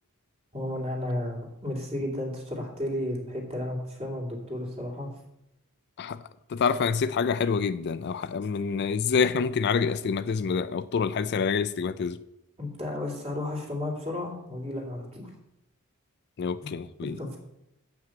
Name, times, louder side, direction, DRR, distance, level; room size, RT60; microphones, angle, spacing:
voice 1, 0.5-5.1 12.6-15.3 16.6-16.7 17.0-17.4, left 1 dB, 30° right, 2.5 m, -33 dB
voice 2, 6.5-12.2 16.4-17.1, left 5 dB, 50° left, 0.4 m, -27 dB
7.7 x 5.9 x 7.6 m
head